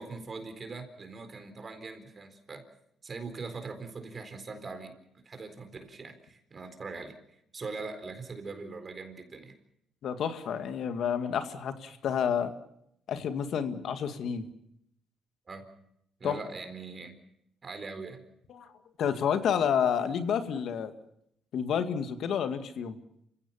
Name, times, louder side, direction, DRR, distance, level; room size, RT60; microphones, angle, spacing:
voice 1, 0.0-2.6 3.0-4.9 5.2-7.2 7.5-9.6 15.5-15.7 16.2-17.1 17.6-18.2, right 4 dB, 35° right, 7 dB, 4.2 m, -41 dB
voice 2, 10.0-12.5 13.1-14.5 16.2-16.4 18.5-18.7 19.0-20.9 21.5-23.0, left 8 dB, 70° left, 9 dB, 2.0 m, -29 dB
27.5 x 16.5 x 7.1 m, 0.75 s
cardioid pair, 90°, 0 cm